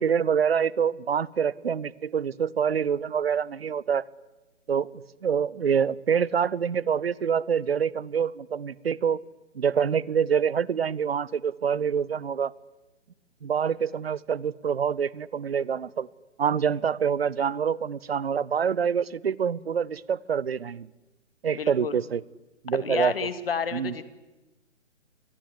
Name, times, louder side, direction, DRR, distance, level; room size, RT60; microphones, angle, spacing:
voice 1, 0.0-4.0 4.7-9.2 9.5-12.5 13.4-16.1 16.4-20.9 21.4-22.2 22.6-23.1 23.7-23.9, right 7 dB, 55° right, 23 dB, 0.9 m, -26 dB
voice 2, 21.5-22.0 22.7-24.1, left 6 dB, 50° left, 12 dB, 2.4 m, -30 dB
26.5 x 21.0 x 9.8 m, 1.1 s
figure-of-eight pair, 140°, 36 cm